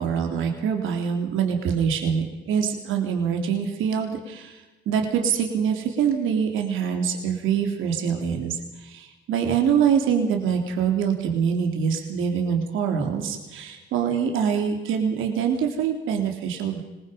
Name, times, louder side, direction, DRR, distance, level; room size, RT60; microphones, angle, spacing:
voice 1, 0.0-4.6 4.8-16.8, right 7 dB, 85° right, 3 dB, 3.5 m, -24 dB
25.5 x 21.5 x 5.3 m, 1.1 s
cardioid pair, 90°, 20 cm